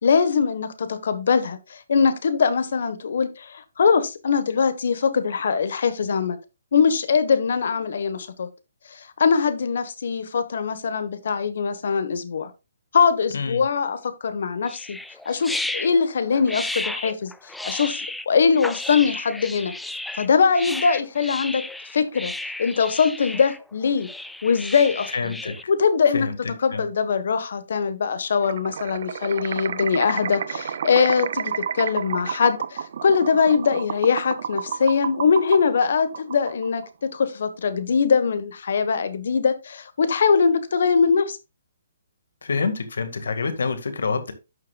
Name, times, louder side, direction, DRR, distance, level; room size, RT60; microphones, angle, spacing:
voice 1, 0.0-6.4 6.7-8.5 8.9-12.5 12.9-15.0 15.2-17.3 17.6-19.7 20.2-21.6 21.9-22.3 22.6-24.1 24.4-25.3 25.7-26.3 26.6-41.4, left 5 dB, 65° left, 1.3 m, -22 dB
sound 1, 14.7-25.6, left 2 dB, ahead, 0.3 m, -33 dB
voice 2, 25.1-25.5 26.1-26.9 42.4-44.3, left 4 dB, 80° left, 1.9 m, -27 dB
sound 2, 28.4-36.9, right 7 dB, 55° right, 0.6 m, -31 dB
11.5 x 6.5 x 2.4 m
hypercardioid pair, 160°, 0 cm